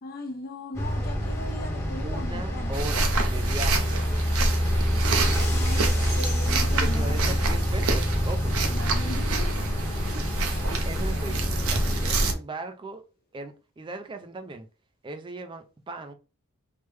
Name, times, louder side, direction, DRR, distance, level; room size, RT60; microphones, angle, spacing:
voice 1, 0.0-2.8 5.5-7.4 8.7-9.6, left 1 dB, 45° left, 0.6 m, -38 dB
sound 1, 0.7-12.3, equal, 15° left, 0.8 m, -27 dB
voice 2, 2.0-3.9 6.7-8.6 10.1-13.0 13.3-14.7 15.0-16.1, right 2 dB, 20° right, 0.3 m, -38 dB
sound 2, 2.7-12.3, right 2 dB, 70° right, 0.6 m, -28 dB
3.3 x 2.1 x 3.1 m
head